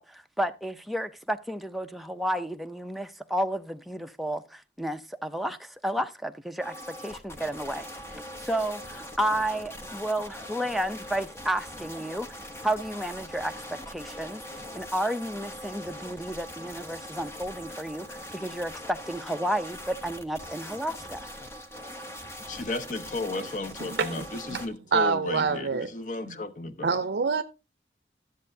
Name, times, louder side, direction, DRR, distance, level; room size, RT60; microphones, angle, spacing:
voice 1, 0.0-6.7 7.0-7.9 8.4-12.3 12.6-13.5 13.9-14.4 14.8-21.3, right 1 dB, ahead, 0.4 m, -31 dB
sound 1, 6.6-24.7, equal, 15° left, 0.9 m, -42 dB
voice 2, 22.5-27.0, left 3 dB, 45° left, 0.8 m, -34 dB
voice 3, 23.9-24.6 24.9-25.9 26.8-27.4, right 5 dB, 70° right, 0.5 m, -26 dB
13.0 x 7.6 x 2.7 m
head